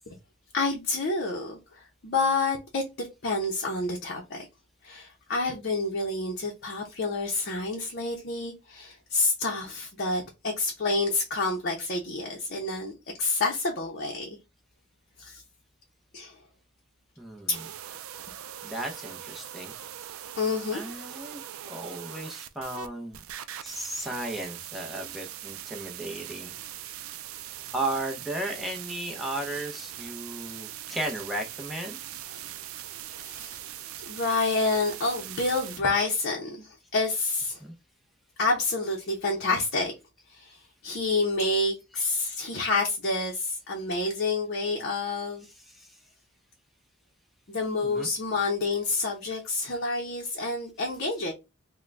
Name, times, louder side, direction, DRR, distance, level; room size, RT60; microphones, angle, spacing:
voice 1, 0.5-4.5 4.8-12.9 13.2-14.4 15.2-15.4 16.1-16.4 17.5-17.6 20.4-20.8 32.3-32.4 33.1-33.6 34.1-37.6 38.4-39.9 40.3-45.5 47.5-51.3, left 3 dB, 50° left, 0.7 m, -28 dB
voice 2, 17.2-17.7 18.6-19.7 20.7-23.2 23.6-26.5 27.7-32.0 37.6-37.7 45.6-46.0 47.8-48.1, right 1 dB, ahead, 0.6 m, -35 dB
sound 1, 17.5-22.9 23.1-35.8, right 11 dB, 85° right, 0.4 m, -41 dB
3.7 x 2.2 x 3.2 m
head